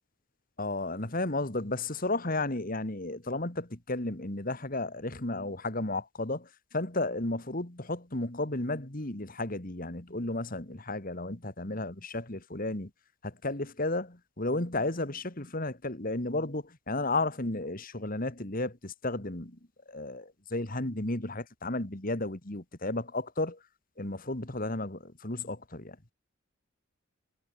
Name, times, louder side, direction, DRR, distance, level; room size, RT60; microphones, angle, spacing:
voice 1, 0.6-12.9 13.2-19.6 19.9-23.6 24.0-26.0, left 2 dB, 40° left, 2.4 m, -33 dB
head